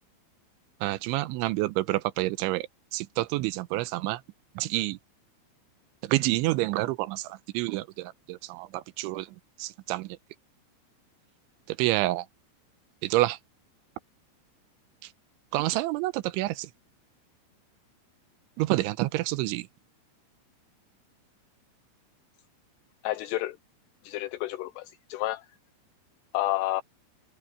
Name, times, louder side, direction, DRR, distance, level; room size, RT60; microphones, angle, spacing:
voice 1, 0.8-2.7 2.9-4.2 4.6-5.0 6.0-9.3 9.6-10.2 11.7-12.3 13.0-13.4 15.5-16.7 18.6-19.7, right 18 dB, 85° right, 3.0 m, -28 dB
voice 2, 23.0-23.6 24.0-25.5 26.3-26.8, left 16 dB, 85° left, 2.4 m, -30 dB
omnidirectional pair, 5.5 m